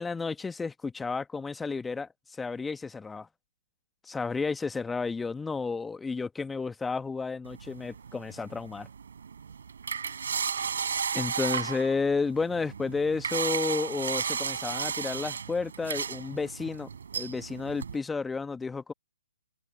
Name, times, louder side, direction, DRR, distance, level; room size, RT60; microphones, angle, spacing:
voice 1, 0.0-2.1 2.4-3.3 4.1-8.9 11.1-18.9, left 4 dB, 5° left, 1.5 m, -32 dB
sound 1, 7.5-18.0, right 6 dB, 65° right, 3.8 m, -34 dB
figure-of-eight pair, 135°, 0 cm